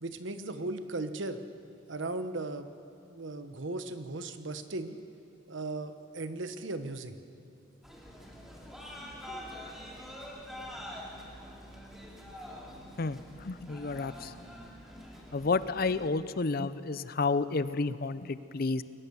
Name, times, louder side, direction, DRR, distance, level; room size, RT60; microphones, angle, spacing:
voice 1, 0.0-1.4 1.9-2.7 3.1-5.0 5.5-7.2, right 2 dB, 70° right, 10 dB, 1.1 m, -37 dB
sound 1, 7.8-16.1, equal, ahead, 2.7 m, -46 dB
voice 2, 13.0-14.3 15.3-18.8, left 3 dB, 50° left, 15 dB, 0.6 m, -31 dB
22.0 x 19.0 x 7.0 m, 2.6 s
head